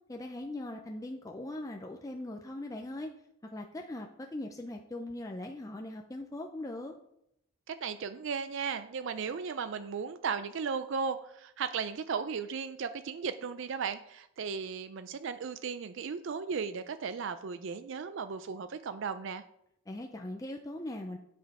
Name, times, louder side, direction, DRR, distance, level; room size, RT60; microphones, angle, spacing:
voice 1, 0.1-3.1 3.4-6.9 19.9-21.2, left 1 dB, 15° left, 2 dB, 0.4 m, -40 dB
voice 2, 7.7-19.4, right 6 dB, 55° right, 11 dB, 0.4 m, -36 dB
8.7 x 5.7 x 4.7 m, 0.77 s
head